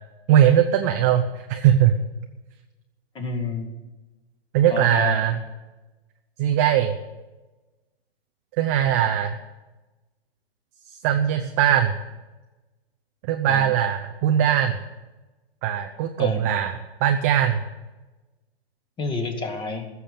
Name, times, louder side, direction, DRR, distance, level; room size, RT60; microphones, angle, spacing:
voice 1, 0.3-1.9 4.5-5.4 6.4-7.0 8.6-9.4 11.0-12.0 13.3-14.8 15.6-17.6, right 10 dB, 15° right, 5 dB, 0.4 m, -20 dB
voice 2, 3.1-3.7 4.7-5.3 13.4-13.7 16.2-16.4 19.0-19.9, left 4 dB, 15° left, 7 dB, 1.5 m, -29 dB
15.0 x 7.0 x 9.2 m, 1.1 s
figure-of-eight pair, 125°, 32 cm